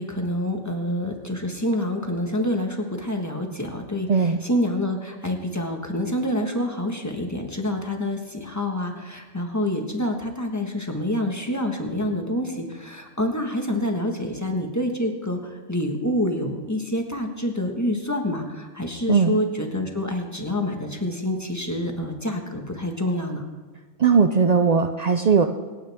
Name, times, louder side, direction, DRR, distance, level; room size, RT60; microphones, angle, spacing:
voice 1, 0.0-23.4, left 1 dB, 15° left, 3 dB, 1.3 m, -27 dB
voice 2, 4.1-4.4 19.1-19.4 24.0-25.5, right 5 dB, 75° right, 7 dB, 0.3 m, -18 dB
26.0 x 9.2 x 3.5 m, 1.3 s
omnidirectional pair, 1.4 m